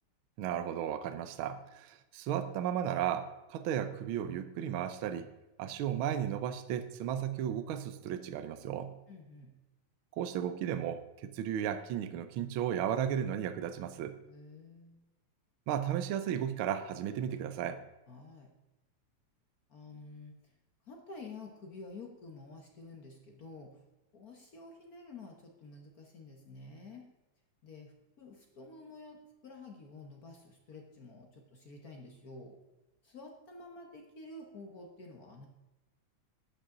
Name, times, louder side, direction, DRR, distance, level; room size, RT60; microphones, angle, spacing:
voice 1, 0.4-5.3 5.6-9.0 10.2-14.2 15.7-17.8, right 9 dB, 80° right, 10 dB, 1.2 m, -34 dB
voice 2, 9.1-9.5 14.3-15.0 18.1-18.5 19.7-20.5 20.8-23.8 24.1-27.1 27.6-32.6 33.0-35.5, left 3 dB, 55° left, 2 dB, 1.0 m, -50 dB
12.0 x 8.8 x 3.8 m, 1.0 s
omnidirectional pair, 3.3 m